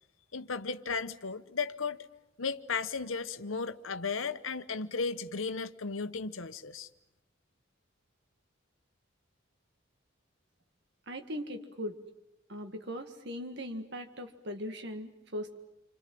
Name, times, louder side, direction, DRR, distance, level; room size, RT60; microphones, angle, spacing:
voice 1, 0.3-2.1 2.4-6.9, left 4 dB, 80° left, 1.1 m, -35 dB
voice 2, 11.1-12.0 12.5-15.6, equal, 55° right, 1.9 m, -39 dB
28.0 x 25.5 x 7.7 m
head